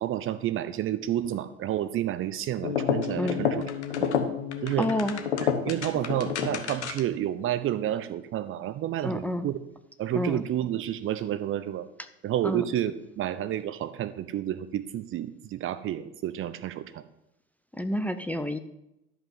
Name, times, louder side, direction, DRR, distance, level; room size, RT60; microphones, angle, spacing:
voice 1, 0.0-3.7 4.0-4.1 4.6-4.9 5.4-9.6 10.0-11.9 12.2-17.0, right 11 dB, 40° right, 14 dB, 0.7 m, -30 dB
sound 1, 2.6-7.2, left 7 dB, 80° left, 1.1 m, -29 dB
voice 2, 4.8-5.2 9.0-9.5 10.1-10.4 12.4-12.6 17.8-18.6, left 1 dB, 5° left, 9 dB, 0.6 m, -29 dB
12.5 x 5.5 x 5.6 m, 0.87 s
figure-of-eight pair, 70°, 34 cm